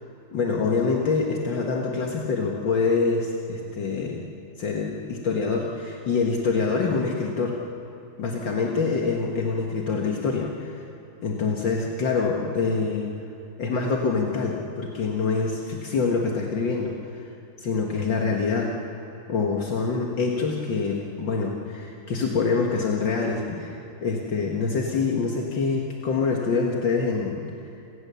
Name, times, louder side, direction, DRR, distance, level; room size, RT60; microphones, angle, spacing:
voice 1, 0.3-4.2 4.6-7.6 8.2-10.7 11.2-13.1 13.6-17.2 17.6-18.7 19.3-27.4, left 4 dB, 70° left, 0 dB, 2.2 m, -25 dB
28.0 x 19.0 x 6.9 m, 2.8 s
omnidirectional pair, 2.1 m